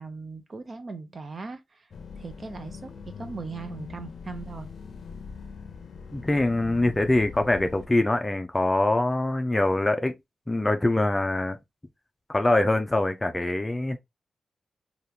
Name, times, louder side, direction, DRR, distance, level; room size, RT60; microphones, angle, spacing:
voice 1, 0.0-1.9 2.2-2.9 3.2-4.7, right 4 dB, 40° right, 0.5 m, -39 dB
sound 1, 1.9-7.9, left 5 dB, 65° left, 0.5 m, -42 dB
voice 2, 6.1-10.2 10.5-11.6 12.3-14.0, left 2 dB, 15° left, 0.5 m, -24 dB
3.5 x 2.4 x 2.8 m
wide cardioid pair, 130°, 0 cm